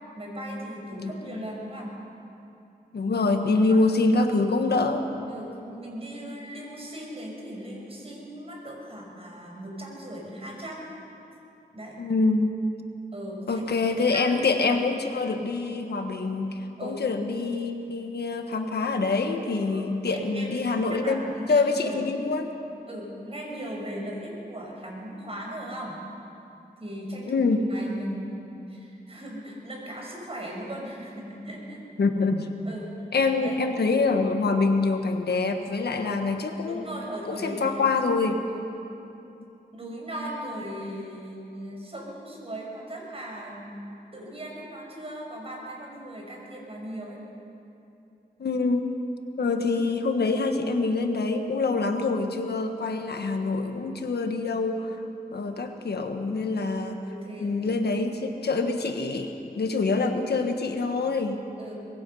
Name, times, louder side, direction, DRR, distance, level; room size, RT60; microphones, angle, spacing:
voice 1, 0.2-1.9 3.7-3.9 4.4-4.5 5.3-10.9 11.7-11.9 13.1-14.4 14.7-14.8 16.8-17.1 19.7-22.0 22.9-26.1 26.8-31.8 32.7-32.9 33.4-33.8 36.0-36.2 36.6-37.8 38.5-38.7 39.7-43.7 44.1-47.2 56.8-57.8 61.6-61.7, right 1 dB, 35° right, -1 dB, 5.6 m, -38 dB
voice 2, 1.0-1.4 2.9-5.0 12.0-12.5 13.5-21.2 21.5-22.5 27.3-27.7 32.0-32.5 33.1-36.9 37.3-38.4 48.4-48.8 49.4-54.9 55.3-57.0 57.4-61.4, left 3 dB, 80° left, 5 dB, 1.5 m, -25 dB
24.5 x 20.5 x 5.6 m, 2.8 s
wide cardioid pair, 105°, 17 cm